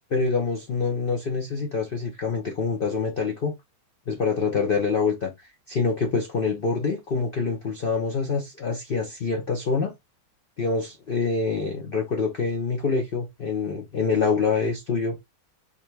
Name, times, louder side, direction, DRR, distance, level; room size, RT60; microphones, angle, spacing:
voice 1, 0.1-3.5 4.1-5.3 5.7-9.9 10.6-15.2, left 4 dB, 70° left, 0.5 m, -26 dB
4.0 x 2.7 x 3.1 m
omnidirectional pair, 1.9 m